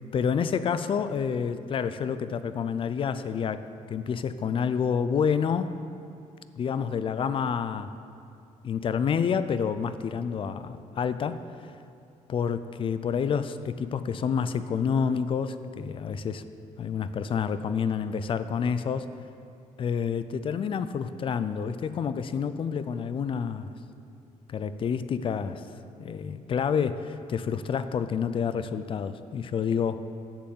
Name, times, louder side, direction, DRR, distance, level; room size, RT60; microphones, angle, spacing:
voice 1, 0.1-5.7 6.6-7.9 8.6-11.4 12.3-16.4 16.8-19.1 19.8-23.7 24.5-25.6 26.0-30.0, left 6 dB, 40° left, 12 dB, 0.4 m, -28 dB
7.8 x 6.9 x 7.5 m, 2.5 s
cardioid pair, 130°, 14 cm